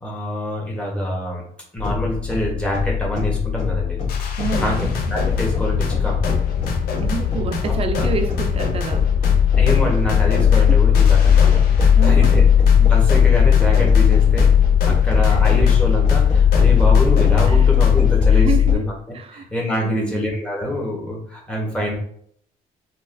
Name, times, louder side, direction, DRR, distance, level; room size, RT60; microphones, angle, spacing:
voice 1, 0.0-1.4 1.7-4.0 4.6-6.2 7.7-7.8 9.6-12.4 12.8-14.6 14.8-18.8 19.3-21.9, equal, 5° left, -3 dB, 1.1 m, -25 dB
sound 1, 1.8-18.8, left 8 dB, 50° left, 1.5 m, -17 dB
sound 2, 4.1-18.2, left 4 dB, 85° left, 0.6 m, -27 dB
voice 2, 4.4-4.9 7.0-9.4 10.5-10.8 11.5-11.6 12.0-12.5 15.3-15.6 17.5-17.7 18.3-18.8 19.1-19.5 19.8-20.3, right 5 dB, 40° right, 7 dB, 0.5 m, -29 dB
4.0 x 2.4 x 2.5 m, 0.64 s
cardioid pair, 110°, 15 cm